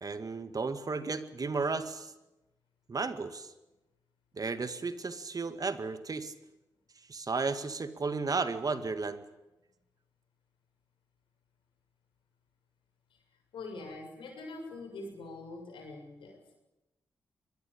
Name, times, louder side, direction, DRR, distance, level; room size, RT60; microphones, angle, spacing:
voice 1, 0.0-2.1 2.9-3.5 4.4-6.3 7.1-9.2, right 4 dB, 45° right, 10 dB, 2.0 m, -33 dB
voice 2, 13.5-16.5, left 2 dB, 75° left, 4 dB, 7.1 m, -44 dB
22.5 x 20.0 x 8.8 m, 0.99 s
supercardioid pair, 40°, 9 cm